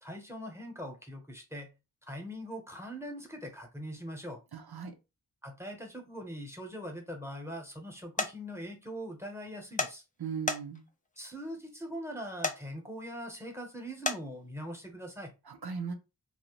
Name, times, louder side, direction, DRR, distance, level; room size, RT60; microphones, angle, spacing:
voice 1, 0.0-1.7 2.0-4.4 5.4-10.0 11.2-15.3, equal, 5° right, 0.8 m, -42 dB
voice 2, 4.5-4.9 10.2-10.8 15.5-15.9, right 6 dB, 90° right, 0.6 m, -38 dB
sound 1, 8.2-8.3 9.8-9.9 10.5-10.9 12.4-12.6 14.1-14.2, left 3 dB, 20° left, 0.4 m, -30 dB
2.6 x 2.1 x 3.0 m
wide cardioid pair, 50°, 37 cm